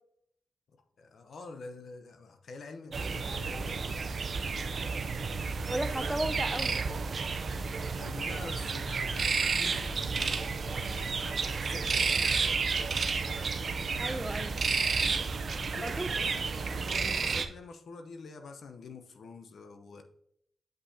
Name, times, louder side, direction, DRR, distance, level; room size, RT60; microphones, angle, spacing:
voice 1, 1.0-3.9 7.9-10.5 10.9-12.4 15.7-16.3 16.7-20.0, left 4 dB, 70° left, 7 dB, 0.8 m, -47 dB
sound 1, 2.9-17.5, right 4 dB, 60° right, 0.6 m, -31 dB
voice 2, 5.7-6.8 14.0-14.6 15.8-16.3, right 1 dB, 10° right, 10 dB, 0.7 m, -34 dB
7.8 x 5.6 x 2.8 m, 0.71 s
supercardioid pair, 45°, 0 cm